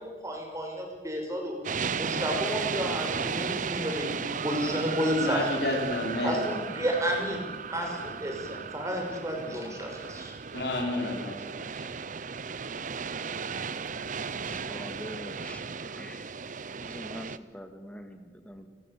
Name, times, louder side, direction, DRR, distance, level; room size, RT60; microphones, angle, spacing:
voice 1, 0.0-1.6 1.9-5.5 6.2-10.3, equal, 20° right, 1 dB, 5.8 m, -31 dB
sound 1, 1.6-17.4, right 5 dB, 45° right, 0.7 m, -35 dB
voice 2, 5.1-6.4 6.8-6.9 10.5-11.9, left 2 dB, 70° left, 0 dB, 5.5 m, -31 dB
voice 3, 14.4-16.4 16.8-18.7, equal, 10° left, 6 dB, 2.3 m, -44 dB
30.0 x 14.5 x 8.6 m, 1.4 s
head